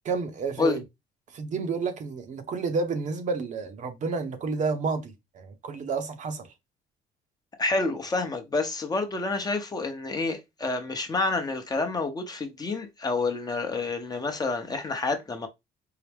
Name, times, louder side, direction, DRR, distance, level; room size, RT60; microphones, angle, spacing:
voice 1, 0.0-0.8 1.3-6.5, right 4 dB, 45° right, 0.8 m, -30 dB
voice 2, 7.6-15.5, left 3 dB, 25° left, 0.7 m, -28 dB
4.7 x 2.0 x 3.4 m
cardioid pair, 110°, 17 cm